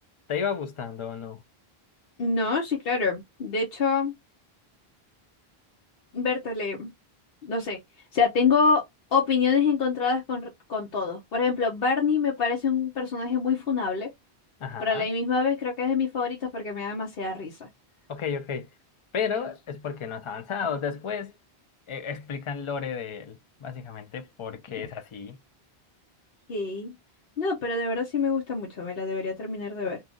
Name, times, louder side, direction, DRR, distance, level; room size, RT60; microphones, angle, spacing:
voice 1, 0.3-1.4 14.6-15.1 18.1-18.7 19.1-21.3 21.9-25.4, left 6 dB, 40° left, 0.5 m, -32 dB
voice 2, 2.2-4.1 6.1-6.9 7.4-7.8 8.1-8.8 9.1-14.1 14.8-17.7 24.8-24.9 26.5-26.9 27.4-30.0, left 5 dB, 65° left, 1.0 m, -26 dB
2.8 x 2.3 x 3.7 m
omnidirectional pair, 1.0 m